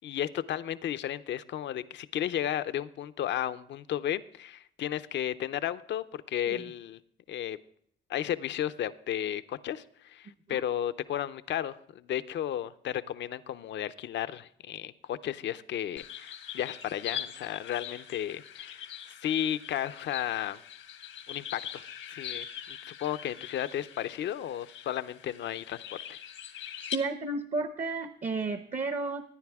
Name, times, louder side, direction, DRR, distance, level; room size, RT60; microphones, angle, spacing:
voice 1, 0.0-7.0 7.3-7.6 8.1-20.6 21.3-21.8 22.1-25.8 26.1-26.2, left 11 dB, 65° left, 13 dB, 0.6 m, -34 dB
sound 1, 16.0-27.0, left 9 dB, 85° left, 1.2 m, -42 dB
voice 2, 26.9-29.2, right 3 dB, 40° right, 8 dB, 0.8 m, -32 dB
15.5 x 9.7 x 3.5 m, 0.64 s
cardioid pair, 90°, 20 cm